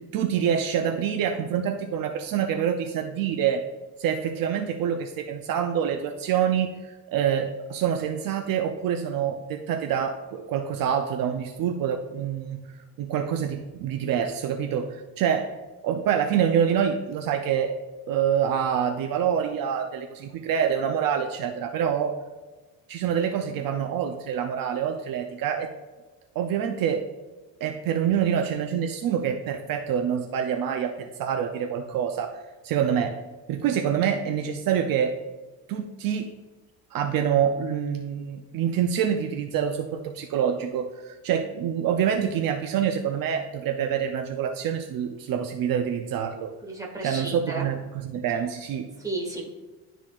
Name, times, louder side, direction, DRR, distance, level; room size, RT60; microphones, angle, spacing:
voice 1, 0.0-3.6 4.0-12.6 13.0-15.6 15.8-17.7 18.1-22.1 22.9-25.7 26.4-27.1 27.6-32.4 32.6-33.2 33.5-35.2 35.7-36.3 36.9-46.6 47.0-48.9, right 8 dB, 60° right, 4 dB, 0.6 m, -26 dB
voice 2, 46.6-47.7 49.0-49.5, right 2 dB, 10° right, -3 dB, 1.7 m, -33 dB
11.5 x 4.0 x 2.4 m, 1.2 s
cardioid pair, 120°, 38 cm